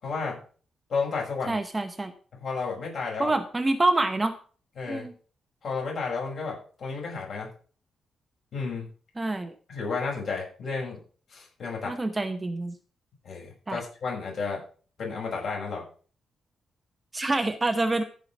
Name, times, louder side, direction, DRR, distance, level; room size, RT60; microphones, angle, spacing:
voice 1, 0.0-0.4 0.9-1.5 2.4-3.3 4.8-5.1 5.6-7.5 8.5-8.9 9.7-11.0 11.3-12.0 13.2-14.6 15.0-15.8, left 4 dB, 50° left, -1 dB, 6.1 m, -32 dB
voice 2, 1.5-2.1 3.2-4.4 4.9-5.1 9.2-9.5 11.9-12.7 13.7-13.8 17.1-18.0, right 2 dB, 15° right, 7 dB, 0.8 m, -26 dB
15.0 x 5.6 x 6.0 m, 0.41 s
wide cardioid pair, 180°, 0 cm